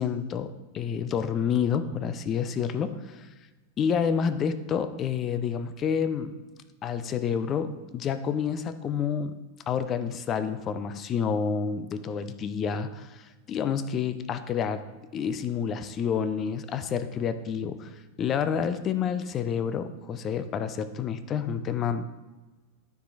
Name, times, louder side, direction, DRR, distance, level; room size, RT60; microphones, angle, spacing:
voice 1, 0.0-3.3 3.8-6.4 6.8-9.4 9.7-14.9 15.1-17.9 18.2-22.1, left 7 dB, 30° left, 12 dB, 0.6 m, -29 dB
13.0 x 4.8 x 2.6 m, 1.2 s
figure-of-eight pair, 90°, 0 cm